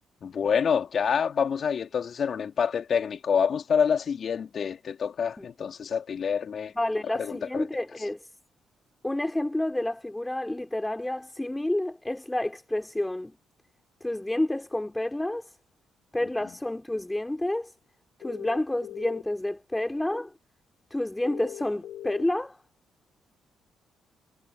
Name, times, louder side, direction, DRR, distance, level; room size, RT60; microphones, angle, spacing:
voice 1, 0.2-6.7 7.2-7.7, left 7 dB, 55° left, 2.9 m, -27 dB
voice 2, 6.7-8.3 9.0-13.3 14.0-15.5 16.1-17.7 18.2-20.3 20.9-22.6, left 1 dB, 10° left, 3.9 m, -29 dB
sound 1, 18.2-19.2 21.2-22.2, left 11 dB, 75° left, 1.6 m, -40 dB
cardioid pair, 90°, 0 cm